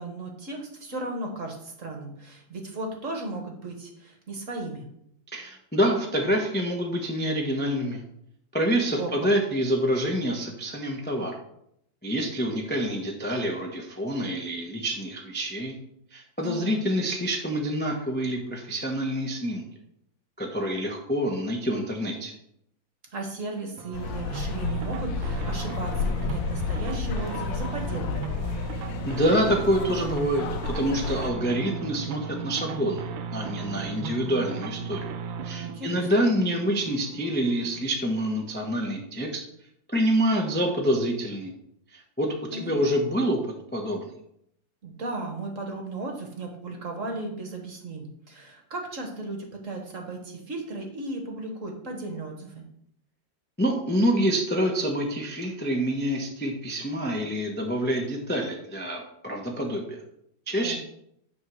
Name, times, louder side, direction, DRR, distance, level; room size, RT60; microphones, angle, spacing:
voice 1, 0.0-4.9 9.0-9.3 16.4-16.8 23.1-28.2 35.6-36.1 42.5-42.9 44.8-52.6 60.6-60.8, right 2 dB, 45° right, 2 dB, 1.5 m, -36 dB
voice 2, 5.3-8.0 8.5-11.4 12.0-15.7 16.1-19.6 20.4-22.3 29.0-35.0 35.4-39.4 39.9-41.5 41.9-43.4 43.7-44.1 53.6-60.0 60.5-60.8, equal, 10° left, 0 dB, 0.6 m, -27 dB
sound 1, 23.8-37.9, right 6 dB, 85° right, 1.5 m, -36 dB
sound 2, 23.9-31.3, left 6 dB, 75° left, 1.2 m, -31 dB
9.8 x 3.7 x 6.2 m, 0.75 s
omnidirectional pair, 2.1 m